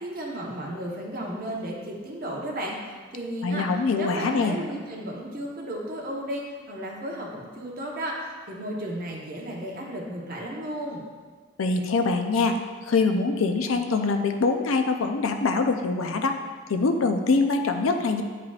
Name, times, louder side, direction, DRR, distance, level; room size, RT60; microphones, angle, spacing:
voice 1, 0.0-3.6 4.0-8.1 8.5-11.0, right 1 dB, 45° right, -2 dB, 1.0 m, -34 dB
voice 2, 3.4-4.6 11.6-12.6 12.8-16.4 16.7-18.2, left 3 dB, 80° left, 6 dB, 0.5 m, -24 dB
8.3 x 4.9 x 2.4 m, 1.5 s
head